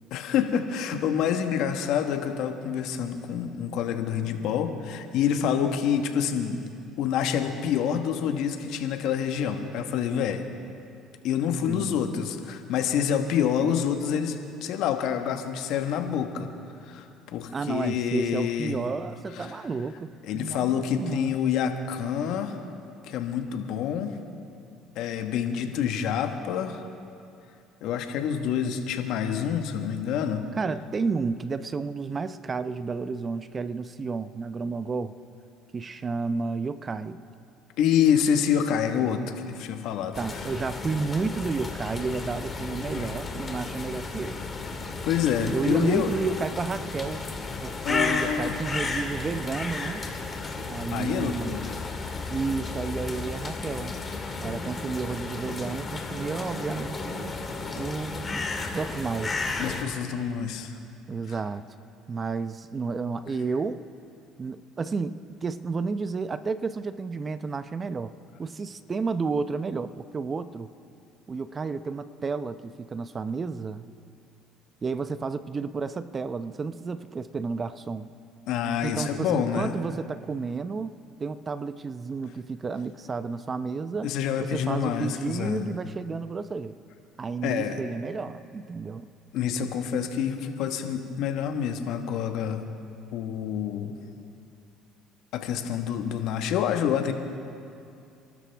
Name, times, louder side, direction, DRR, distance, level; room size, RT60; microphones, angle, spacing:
voice 1, 0.1-6.6 7.0-10.4 11.2-14.4 14.6-16.5 16.8-18.8 19.4-19.5 20.2-22.6 23.0-24.2 24.9-26.9 27.8-30.5 37.8-40.4 43.0-43.1 44.7-46.1 47.8-48.6 50.9-51.7 54.2-54.3 57.6-57.9 59.6-60.8 78.5-79.8 84.0-85.7 87.4-87.8 89.3-92.6 93.1-94.0 95.3-97.1, left 8 dB, 70° left, 6 dB, 1.3 m, -27 dB
voice 2, 17.5-21.3 30.5-35.2 35.7-37.2 40.2-44.4 45.5-47.2 47.6-50.0 50.7-51.7 52.3-53.9 54.4-57.3 57.7-58.5 58.7-59.4 61.1-61.6 62.1-63.8 64.4-68.1 68.4-70.7 71.3-73.9 74.8-78.1 78.8-80.9 81.2-84.1 84.4-86.8 87.2-89.1, right 4 dB, 30° right, 12 dB, 0.7 m, -31 dB
sound 1, 40.1-59.8, left 3 dB, 25° left, 2.2 m, -33 dB
29.0 x 12.5 x 3.5 m, 2.6 s
supercardioid pair, 85°, 0 cm